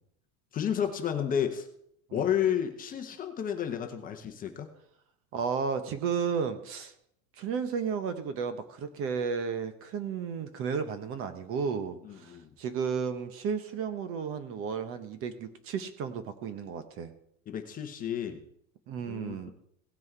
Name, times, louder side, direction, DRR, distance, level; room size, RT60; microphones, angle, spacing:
voice 1, 0.5-1.7 2.1-4.7 12.0-12.5 17.5-18.4 19.1-19.5, left 9 dB, 20° left, 5 dB, 0.9 m, -31 dB
voice 2, 5.3-6.9 7.4-17.1 18.9-19.5, right 6 dB, 35° right, 11 dB, 0.9 m, -33 dB
17.0 x 6.2 x 4.6 m, 0.70 s
supercardioid pair, 165°, 39 cm